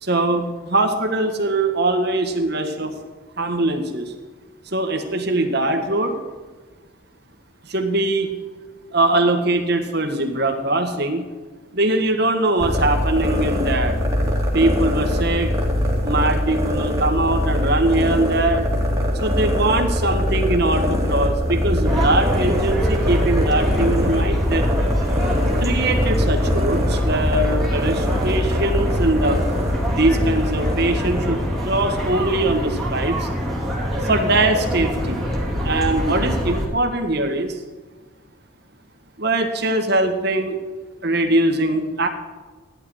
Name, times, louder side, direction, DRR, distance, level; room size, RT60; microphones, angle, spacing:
voice 1, 0.0-2.9 3.4-4.1 4.7-6.2 7.6-8.3 8.9-11.3 11.7-14.0 14.5-15.5 16.0-18.6 19.1-24.7 25.6-29.4 29.9-33.3 34.0-35.2 35.6-37.6 39.2-40.6 41.0-42.1, right 2 dB, 50° right, 5 dB, 1.7 m, -21 dB
sound 1, 12.6-31.8, equal, 15° right, 2.3 m, -22 dB
sound 2, 21.8-36.7, equal, ahead, 2.6 m, -25 dB
14.0 x 11.0 x 4.9 m, 1.4 s
head